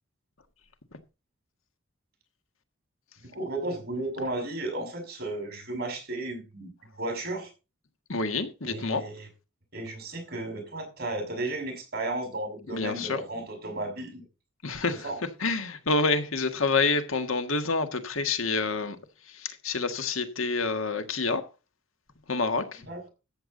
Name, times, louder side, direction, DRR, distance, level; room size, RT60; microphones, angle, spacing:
voice 1, 3.2-6.7 7.0-7.5 8.6-9.3 9.7-14.2 14.9-15.2 22.8-23.1, right 2 dB, 50° right, 5.9 m, -34 dB
voice 2, 8.1-9.0 12.7-13.2 14.6-15.0 15.4-19.0 19.6-21.4 22.3-22.6, left 3 dB, 80° left, 1.6 m, -27 dB
13.5 x 8.2 x 3.9 m
head